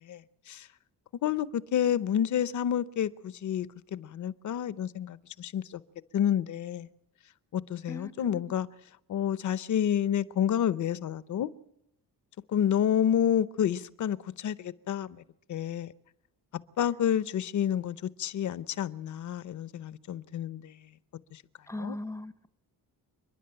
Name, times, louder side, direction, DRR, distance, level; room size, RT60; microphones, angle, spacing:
voice 1, 1.2-5.8 6.1-6.9 7.5-8.7 9.1-11.5 12.5-15.2 15.5-15.9 16.8-20.8 21.3-21.4 21.8-22.0, left 9 dB, 55° left, 0.8 m, -29 dB
voice 2, 7.9-8.4 21.7-22.5, left 1 dB, 10° left, 0.7 m, -39 dB
29.0 x 11.0 x 8.9 m
wide cardioid pair, 180°, 37 cm